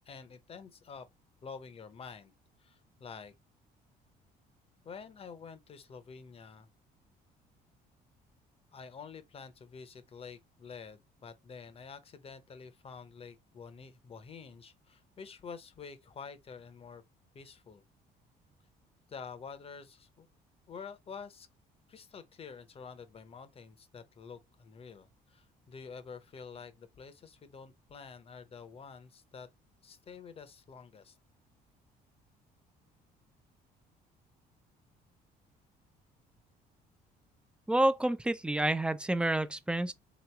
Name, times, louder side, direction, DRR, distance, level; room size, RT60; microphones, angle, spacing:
voice 1, 0.1-1.1 1.4-2.3 2.6-3.3 4.8-6.7 8.7-17.0 17.3-17.8 19.1-20.3 20.7-21.5 21.9-29.5 29.8-31.2, left 5 dB, 35° left, 0.8 m, -48 dB
voice 2, 37.7-39.9, right 1 dB, 5° right, 0.4 m, -28 dB
3.7 x 3.0 x 3.4 m
cardioid pair, 110°, 17 cm